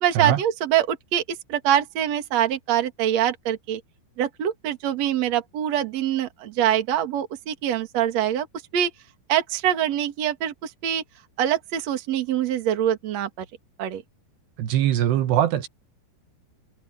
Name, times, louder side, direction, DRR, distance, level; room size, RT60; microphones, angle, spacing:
voice 1, 0.0-3.8 4.2-8.5 8.7-8.9 9.3-11.0 11.4-13.3 13.8-14.0, right 10 dB, 45° right, 2.7 m, -24 dB
voice 2, 14.6-15.7, right 11 dB, 75° right, 3.3 m, -21 dB
omnidirectional pair, 4.9 m